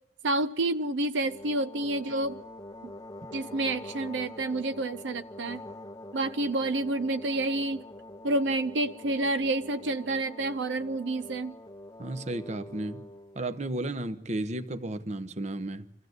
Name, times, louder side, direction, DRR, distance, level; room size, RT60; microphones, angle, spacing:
voice 1, 0.2-2.4 2.8-2.9 3.3-5.6 6.1-7.8 8.2-11.5, right 2 dB, 85° right, 12 dB, 0.7 m, -29 dB
sound 1, 1.2-13.4, left 1 dB, 20° left, 0.7 m, -45 dB
voice 2, 12.0-13.1 13.3-15.9, right 1 dB, 40° right, 11 dB, 1.1 m, -33 dB
26.0 x 16.0 x 8.0 m, 0.97 s
head